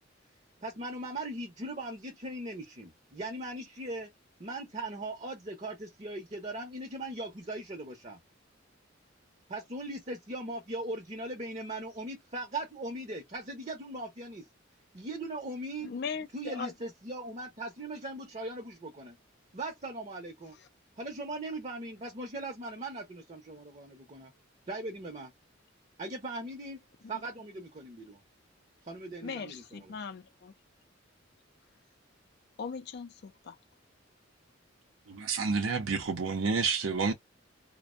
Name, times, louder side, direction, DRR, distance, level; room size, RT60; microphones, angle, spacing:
voice 1, 0.6-4.1 4.4-8.2 9.5-14.5 14.9-15.9 16.3-19.2 19.5-20.6 21.0-24.3 24.7-25.3 26.0-26.8 27.1-28.2 28.8-30.0, right 2 dB, 35° right, 0.7 m, -39 dB
voice 2, 15.8-16.7 29.2-30.5 32.6-33.6, left 5 dB, 55° left, 0.4 m, -39 dB
voice 3, 35.1-37.1, right 4 dB, 85° right, 0.6 m, -29 dB
2.5 x 2.0 x 2.4 m
head